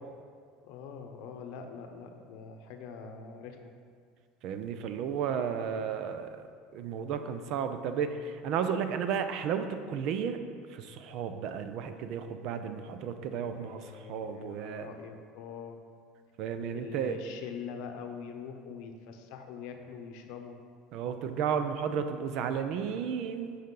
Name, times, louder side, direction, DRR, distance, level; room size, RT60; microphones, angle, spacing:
voice 1, 0.6-3.7 13.3-15.8 16.7-20.6, left 6 dB, 70° left, 5 dB, 0.7 m, -44 dB
voice 2, 4.4-6.5 6.7-10.4 10.7-14.9 16.4-17.2 20.9-23.6, right 7 dB, 60° right, 8 dB, 0.5 m, -33 dB
7.9 x 5.1 x 3.9 m, 2.1 s
supercardioid pair, 125°, 0 cm